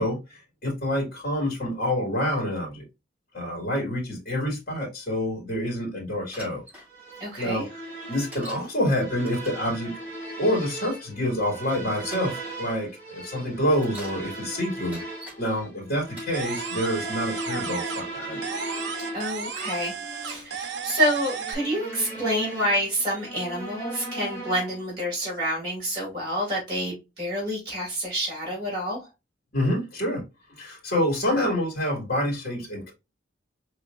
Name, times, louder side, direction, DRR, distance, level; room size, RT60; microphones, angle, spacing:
voice 1, 0.0-2.8 3.3-6.6 7.4-7.7 8.1-9.9 10.4-15.0 15.4-18.4 29.5-30.2 30.6-32.9, equal, 55° left, 1.9 m, -27 dB
Bicycle, 6.3-6.9 8.3-8.7 9.2-9.7 10.8-10.9 11.6-12.3 13.6-14.2 14.7-15.4 16.0-16.7 17.4-17.8, equal, 10° right, 2.2 m, -44 dB
sound 1, 6.9-24.9, right 2 dB, 15° left, 2.3 m, -38 dB
voice 2, 7.2-7.7 19.1-29.1, equal, 25° right, 2.3 m, -28 dB
sound 2, 16.3-18.2 18.4-21.5, right 6 dB, 80° right, 0.7 m, -34 dB
4.7 x 3.1 x 2.4 m
head